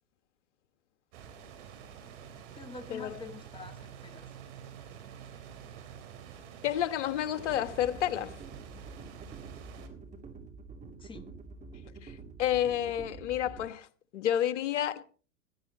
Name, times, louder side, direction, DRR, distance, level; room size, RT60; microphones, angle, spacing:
sound 1, 1.1-9.9, right 8 dB, 60° right, 3.6 m, -48 dB
voice 1, 2.5-4.3 11.0-11.3, left 3 dB, 15° left, 1.8 m, -46 dB
voice 2, 6.6-8.4 12.0-12.1 12.4-13.9 14.1-15.0, left 11 dB, 65° left, 1.4 m, -30 dB
sound 2, 7.3-13.7, right 4 dB, 20° right, 2.8 m, -47 dB
17.5 x 13.5 x 4.1 m
hypercardioid pair, 100°, 38 cm